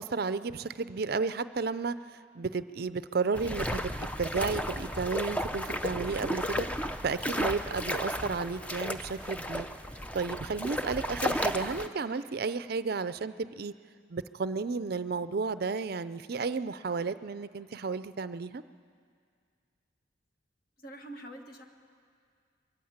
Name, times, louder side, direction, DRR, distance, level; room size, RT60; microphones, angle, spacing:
voice 1, 0.0-2.0 2.3-6.7 7.0-9.7 10.1-13.7 14.1-18.6, right 4 dB, 50° right, 13 dB, 0.5 m, -32 dB
sound 1, 3.3-11.9, equal, 5° left, 0.5 m, -34 dB
voice 2, 20.8-21.6, right 1 dB, 50° left, 5 dB, 1.5 m, -45 dB
22.5 x 14.5 x 8.7 m, 2.2 s
head